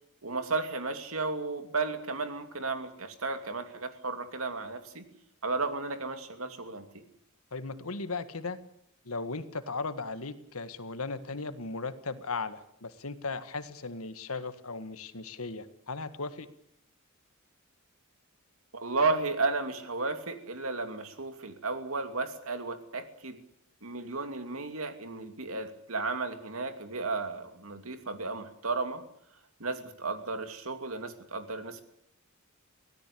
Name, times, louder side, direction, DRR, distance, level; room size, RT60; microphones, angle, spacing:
voice 1, 0.2-5.1 5.4-6.9 18.7-23.4 23.8-29.0 29.6-31.8, right 3 dB, 75° right, 8 dB, 2.8 m, -33 dB
voice 2, 7.5-8.6 9.0-16.5, left 3 dB, 85° left, 11 dB, 1.7 m, -37 dB
24.5 x 17.0 x 8.6 m, 0.73 s
head